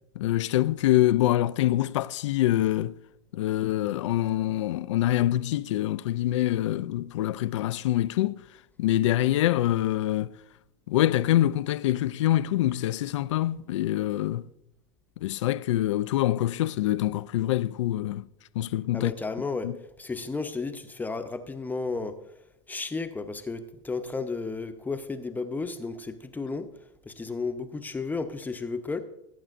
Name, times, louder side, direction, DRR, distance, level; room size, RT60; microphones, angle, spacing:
voice 1, 0.2-2.9 3.3-8.4 8.8-10.3 10.9-14.4 15.2-18.2 18.6-19.1 19.6-19.7, left 14 dB, 80° left, 0.4 m, -25 dB
voice 2, 18.9-22.2 22.7-26.7 27.0-29.0, left 4 dB, 10° left, 0.8 m, -33 dB
18.5 x 8.7 x 2.5 m
hypercardioid pair, 110°, 15 cm